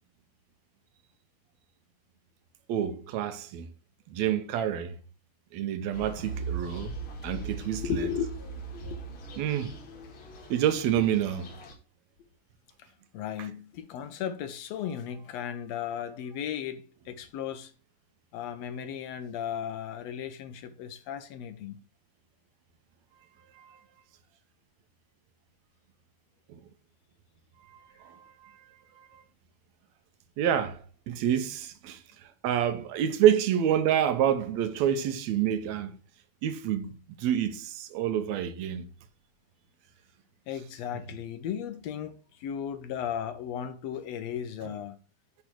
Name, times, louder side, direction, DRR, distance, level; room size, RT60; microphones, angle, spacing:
voice 1, 2.7-3.7 4.1-5.0 5.5-6.9 7.2-8.1 9.4-9.8 10.5-11.4 23.6-23.8 26.5-26.6 28.0-28.6 29.0-29.2 30.4-32.0 32.4-36.0 36.4-38.9 44.7-44.8, right 10 dB, 75° right, 1.9 m, -28 dB
sound 1, 5.9-11.7, right 4 dB, 50° left, 1.9 m, -40 dB
voice 2, 7.8-8.2 8.7-9.5 13.1-17.7 18.3-21.8 40.5-45.0, left 8 dB, 75° left, 1.6 m, -35 dB
8.5 x 3.3 x 6.1 m
omnidirectional pair, 3.4 m